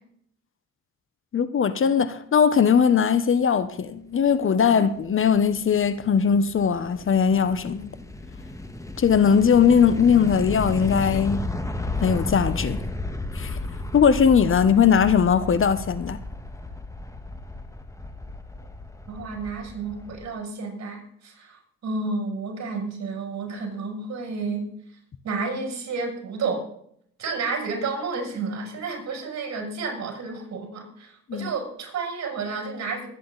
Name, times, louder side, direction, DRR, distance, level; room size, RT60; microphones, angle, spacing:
voice 1, 1.3-7.9 9.0-11.5 12.0-12.8 13.3-13.6 13.9-16.2 31.3-31.5, left 7 dB, 45° left, 1.1 m, -20 dB
sound 1, 4.8-20.3, left 2 dB, 10° left, 1.6 m, -34 dB
voice 2, 19.1-24.7 25.2-26.7 27.2-33.1, right 4 dB, 60° right, 7.3 m, -31 dB
22.0 x 10.0 x 4.1 m
cardioid pair, 90°, 30 cm